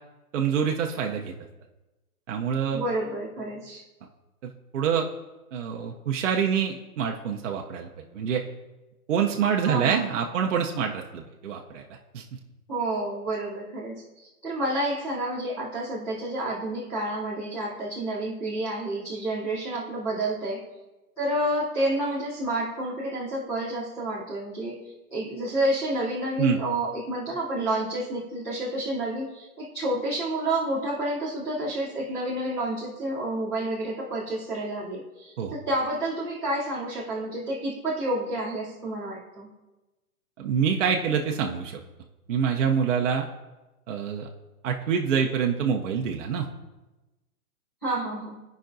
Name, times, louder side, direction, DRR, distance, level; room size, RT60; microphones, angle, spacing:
voice 1, 0.3-1.3 2.3-2.8 4.4-5.1 5.5-8.4 9.1-11.8 12.1-12.2 26.4-26.6 35.4-35.5 40.4-41.8 42.3-43.3 43.9-44.3 44.6-46.5, right 7 dB, 55° right, 1 dB, 0.7 m, -26 dB
voice 2, 2.7-3.8 9.6-10.1 12.7-20.6 21.2-24.8 25.1-39.5 47.8-48.4, right 1 dB, 5° left, -12 dB, 0.6 m, -29 dB
15.5 x 5.2 x 2.6 m, 1.1 s
hypercardioid pair, 170°, 45 cm